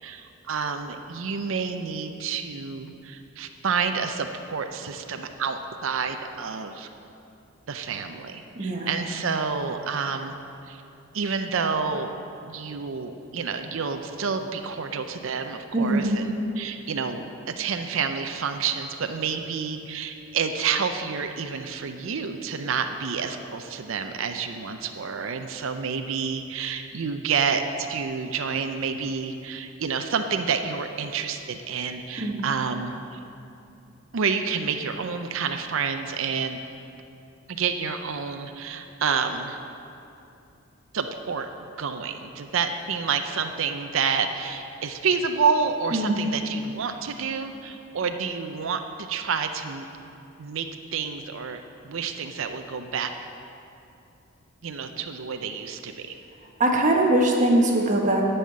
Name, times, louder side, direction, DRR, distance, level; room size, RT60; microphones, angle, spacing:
voice 1, 0.0-6.9 7.7-10.4 10.7-10.8 11.1-12.1 12.5-16.3 16.6-33.2 34.1-36.6 37.5-39.6 40.9-41.5 41.8-49.8 50.4-53.1 54.6-56.2, right 5 dB, 65° right, 6 dB, 0.5 m, -29 dB
voice 2, 8.6-8.9 15.7-16.1 32.2-32.4 45.9-46.2 56.6-58.2, right 1 dB, 35° right, 0 dB, 1.2 m, -21 dB
11.0 x 5.6 x 8.5 m, 2.7 s
head